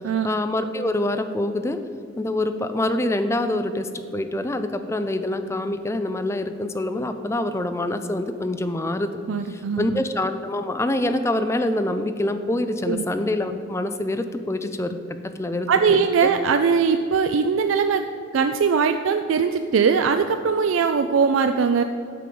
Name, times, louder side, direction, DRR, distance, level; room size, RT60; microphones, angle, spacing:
voice 1, 0.2-1.8 2.2-9.2 9.5-15.0 15.2-16.3, left 1 dB, 15° left, 8 dB, 0.4 m, -25 dB
voice 2, 9.3-10.0 12.9-13.0 15.7-18.1 18.3-21.8, right 6 dB, 80° right, 8 dB, 0.4 m, -20 dB
8.5 x 5.2 x 7.6 m, 2.4 s
head